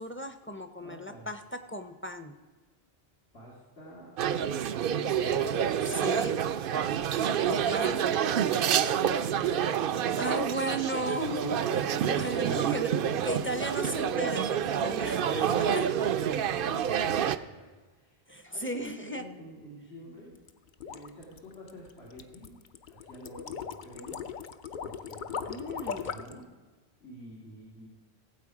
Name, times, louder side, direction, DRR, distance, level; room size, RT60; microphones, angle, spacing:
voice 1, 0.0-2.3 5.8-6.4 7.4-8.1 10.2-12.9 13.2-15.9 18.3-19.2 25.5-26.1, equal, 15° left, 7 dB, 0.5 m, -35 dB
voice 2, 0.8-1.3 3.3-4.2 4.7-5.8 7.1-10.2 10.6-10.8 11.7-12.5 12.9-13.7 14.7-20.4 20.8-22.6 22.8-24.2 24.8-26.5 27.0-27.9, equal, 90° left, -5 dB, 2.8 m, -48 dB
sound 1, 4.2-17.4, right 8 dB, 65° right, 0.7 m, -28 dB
sound 2, 20.4-26.4, left 7 dB, 55° left, 0.7 m, -39 dB
17.0 x 8.0 x 4.9 m, 1.4 s
omnidirectional pair, 1.1 m